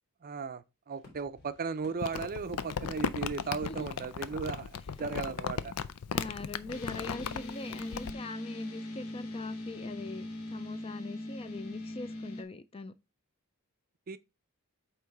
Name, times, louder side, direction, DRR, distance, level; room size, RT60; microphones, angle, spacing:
voice 1, 0.2-4.7 5.0-5.7 14.1-14.2, right 5 dB, 40° right, 0.5 m, -36 dB
sound 1, 0.9-7.0 7.4-8.7, left 2 dB, 45° left, 3.2 m, -57 dB
Crumpling crinkling, 2.0-8.1, left 6 dB, 85° left, 0.5 m, -36 dB
voice 2, 6.1-12.9, left 3 dB, 25° left, 0.4 m, -42 dB
sound 2, 6.7-12.4, left 1 dB, 70° left, 1.2 m, -41 dB
8.4 x 3.1 x 4.7 m
head